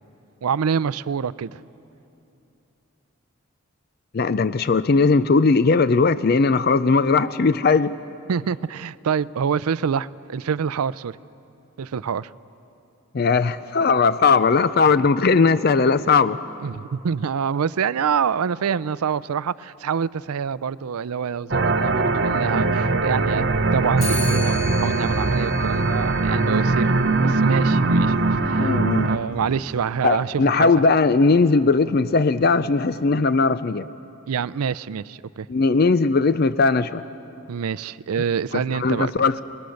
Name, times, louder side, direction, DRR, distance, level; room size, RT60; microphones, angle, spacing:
voice 1, 0.4-1.6 8.3-11.2 11.8-12.3 16.6-23.5 23.7-26.9 27.2-28.1 28.4-28.8 29.0-30.7 34.3-35.5 37.5-39.1, right 7 dB, 90° right, 18 dB, 0.4 m, -26 dB
voice 2, 4.1-8.0 13.1-16.4 28.6-29.1 30.0-33.9 35.5-37.0 38.7-39.4, left 4 dB, 45° left, 14 dB, 0.4 m, -18 dB
sound 1, 21.5-29.2, right 3 dB, 50° right, 0.7 m, -21 dB
Clock, 24.0-33.3, left 2 dB, 75° left, 7.4 m, -38 dB
30.0 x 21.0 x 6.5 m, 2.8 s
head